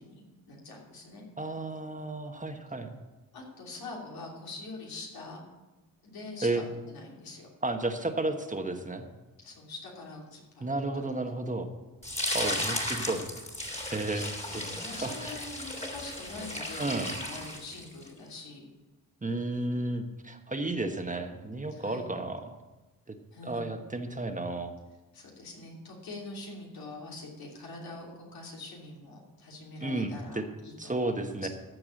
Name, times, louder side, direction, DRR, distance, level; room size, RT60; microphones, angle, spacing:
voice 1, 0.0-1.2 3.3-5.4 6.0-7.5 9.4-10.7 10.9-11.1 14.1-18.7 21.7-22.1 23.3-23.6 25.1-31.2, left 2 dB, 90° left, -2 dB, 3.0 m, -44 dB
voice 2, 1.4-2.9 6.4-6.6 7.6-9.0 10.6-11.7 12.3-13.3 13.9-14.2 14.5-14.6 14.9-15.4 16.8-17.1 19.2-22.6 23.4-24.7 29.8-30.5 30.8-31.5, right 2 dB, 20° right, 5 dB, 1.2 m, -32 dB
sound 1, 12.0-18.1, left 1 dB, 20° left, 2.3 m, -35 dB
14.0 x 4.8 x 7.7 m, 1.1 s
cardioid pair, 75°, 35 cm